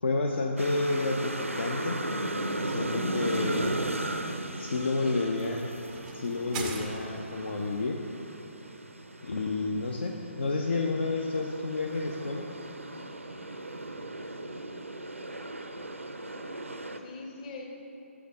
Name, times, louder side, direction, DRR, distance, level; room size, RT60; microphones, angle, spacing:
voice 1, 0.0-2.0 2.6-3.9 4.6-5.7 6.1-8.0 9.2-12.5, left 3 dB, 55° left, 1 dB, 0.5 m, -30 dB
sound 1, 0.6-17.0, right 1 dB, 80° right, 0.5 m, -36 dB
voice 2, 3.2-3.6 5.0-5.7 17.0-17.7, left 3 dB, 30° left, 0 dB, 1.0 m, -44 dB
sound 2, 3.3-7.4, right 4 dB, 15° right, 0.4 m, -44 dB
7.0 x 5.1 x 6.2 m, 2.9 s
figure-of-eight pair, 135°, 7 cm